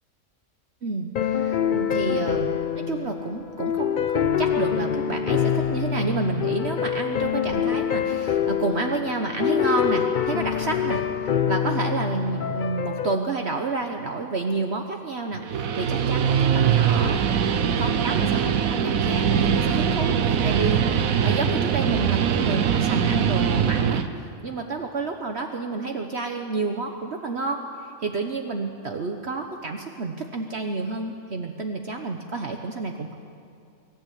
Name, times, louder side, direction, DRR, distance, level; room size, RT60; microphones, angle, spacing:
voice 1, 0.8-17.5 17.8-24.0 24.4-33.1, right 3 dB, 55° right, 4 dB, 1.3 m, -30 dB
sound 1, 1.2-13.2, left 8 dB, 50° left, 0.6 m, -25 dB
Guitar, 15.3-24.1, right 7 dB, 90° right, 1.3 m, -22 dB
23.5 x 14.0 x 8.5 m, 2.5 s
omnidirectional pair, 1.4 m